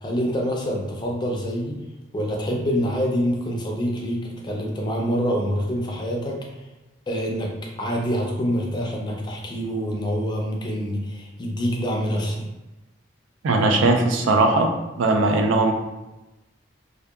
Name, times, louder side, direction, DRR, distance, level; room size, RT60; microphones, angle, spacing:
voice 1, 0.0-1.8 2.1-6.5 7.1-7.5 7.8-12.5, equal, 25° left, 0 dB, 0.4 m, -26 dB
voice 2, 13.4-14.7 15.0-15.7, right 2 dB, 90° right, 4 dB, 0.4 m, -19 dB
2.7 x 2.2 x 2.3 m, 1.0 s
head